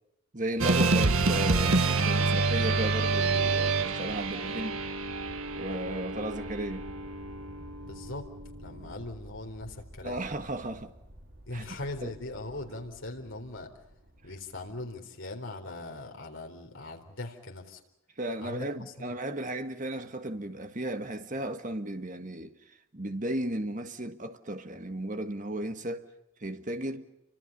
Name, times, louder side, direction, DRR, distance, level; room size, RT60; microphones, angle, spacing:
voice 1, 0.3-4.8 5.5-6.9 10.0-10.9 11.5-11.6 12.0-12.1 18.2-22.5 22.9-26.1 26.4-27.1, right 1 dB, 35° right, 1.7 m, -34 dB
sound 1, 0.6-8.9, right 3 dB, 85° right, 1.6 m, -28 dB
sound 2, 2.4-14.9, equal, 60° right, 4.7 m, -50 dB
voice 2, 7.8-8.3 8.6-10.2 11.5-13.7 14.2-17.8 18.4-19.2, left 2 dB, 65° left, 4.0 m, -40 dB
29.5 x 25.5 x 5.5 m
head